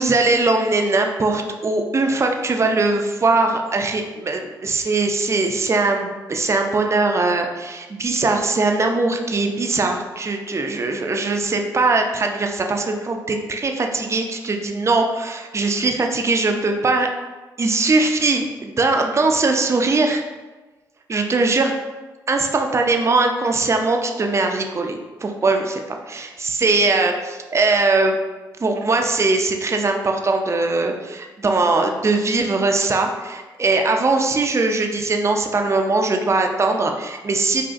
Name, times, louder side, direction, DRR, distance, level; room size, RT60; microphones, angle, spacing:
voice 1, 0.0-17.1 17.6-20.2 21.1-21.7 22.3-25.8 26.1-28.2 28.6-37.6, right 3 dB, 35° right, 3 dB, 0.4 m, -20 dB
3.8 x 2.4 x 2.4 m, 1.2 s
supercardioid pair, 50°, 9 cm